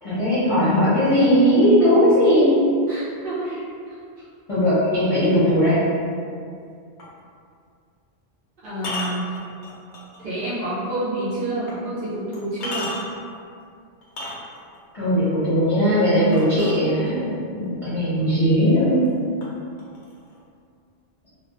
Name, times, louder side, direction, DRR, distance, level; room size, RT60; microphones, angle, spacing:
voice 1, 0.0-2.5 4.5-5.8 14.9-17.3 17.6-19.0, equal, 30° left, -14 dB, 0.8 m, -18 dB
voice 2, 2.9-3.6 3.9-4.3 8.6-9.3 10.2-13.0, right 1 dB, 60° right, -10 dB, 0.8 m, -29 dB
sound 1, 7.0-7.2 8.8-10.2 10.7-10.8 11.7-11.8 12.3-13.3 14.0-14.8 16.3-17.3 18.2-18.3 18.7-19.1 19.4-20.4, left 2 dB, 90° left, 0.9 m, -33 dB
2.3 x 2.3 x 2.4 m, 2.3 s
omnidirectional pair, 1.1 m